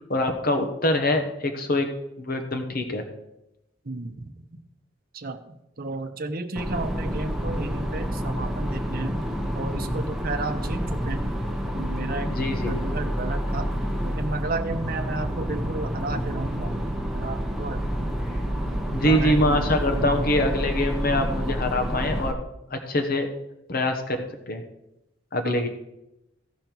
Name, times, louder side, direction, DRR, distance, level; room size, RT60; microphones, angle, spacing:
voice 1, 0.1-1.9 2.2-3.0 12.2-12.8 18.9-22.3 22.7-23.3 23.7-24.6 25.3-25.7, left 1 dB, 50° left, 5 dB, 1.1 m, -24 dB
voice 2, 3.8-4.5 5.1-9.2 9.5-11.4 11.8-12.3 12.7-13.7 14.0-17.8 19.0-20.3 25.4-25.7, right 2 dB, 50° right, 7 dB, 0.8 m, -33 dB
sound 1, 6.6-22.3, equal, ahead, 1.1 m, -28 dB
15.5 x 5.3 x 4.6 m, 0.87 s
head